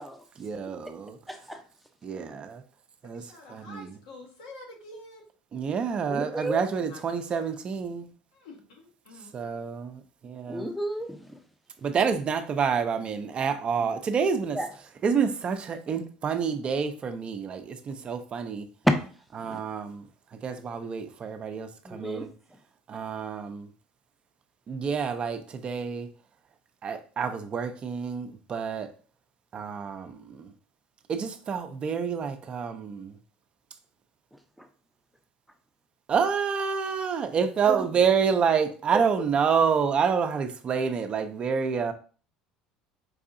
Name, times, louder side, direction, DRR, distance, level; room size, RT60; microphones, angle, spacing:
voice 1, 0.4-1.2 2.0-2.6 3.0-3.2 3.5-4.0 5.5-8.1 9.3-10.7 11.8-14.6 15.0-18.7 19.4-20.1 20.4-22.3 22.9-23.7 24.7-26.1 26.8-28.9 29.5-30.5 31.1-33.2 36.1-41.9, right 6 dB, 40° right, 0.5 m, -28 dB
voice 2, 1.3-1.6 6.1-6.7 10.5-11.4 14.5-14.7 19.5-19.6 21.9-22.3 34.6-34.7 37.7-37.8 38.9-39.0, right 1 dB, ahead, 0.6 m, -33 dB
voice 3, 3.0-5.2 6.5-7.0 7.3-7.4 8.3-9.3, left 2 dB, 85° left, 1.2 m, -47 dB
4.7 x 2.6 x 2.5 m
supercardioid pair, 90°, 3 cm